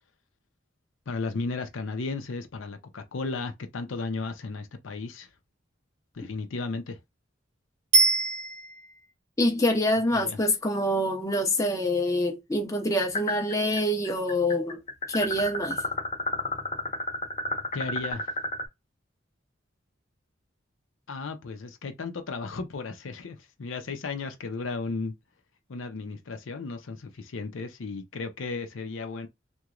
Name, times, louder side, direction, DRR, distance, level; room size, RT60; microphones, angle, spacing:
voice 1, 1.1-5.3 6.1-7.0 10.1-10.4 17.7-18.3 21.1-25.1 25.7-29.3, left 3 dB, 90° left, 0.6 m, -34 dB
Bicycle bell, 7.9-9.1 18.1-18.2, right 3 dB, 45° right, 0.9 m, -23 dB
voice 2, 9.4-14.8 15.1-15.8, left 1 dB, 15° left, 0.6 m, -26 dB
sound 1, 13.1-13.8 14.1-18.6, left 2 dB, 35° left, 1.0 m, -30 dB
3.0 x 2.2 x 2.4 m
head